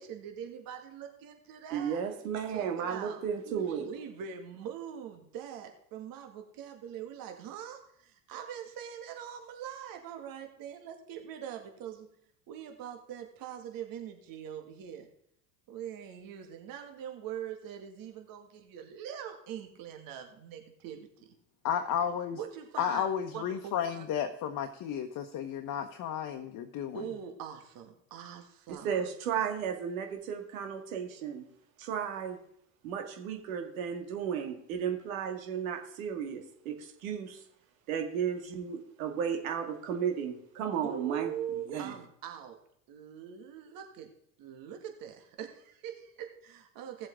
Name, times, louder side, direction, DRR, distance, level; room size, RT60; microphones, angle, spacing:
voice 1, 0.0-2.0 2.5-3.2 3.8-12.1 12.5-15.1 15.7-21.1 22.4-23.1 23.3-24.0 26.9-29.0 40.8-42.6 42.9-44.1 44.4-47.1, right 9 dB, 55° right, 5 dB, 2.2 m, -42 dB
voice 2, 1.7-3.9 28.8-31.4 31.8-32.4 32.8-37.4 37.9-42.0, right 7 dB, 75° right, 4 dB, 2.3 m, -34 dB
voice 3, 21.6-22.4 22.8-27.0, left 8 dB, 50° left, 5 dB, 1.2 m, -33 dB
17.0 x 7.6 x 3.8 m, 0.70 s
hypercardioid pair, 75°, 41 cm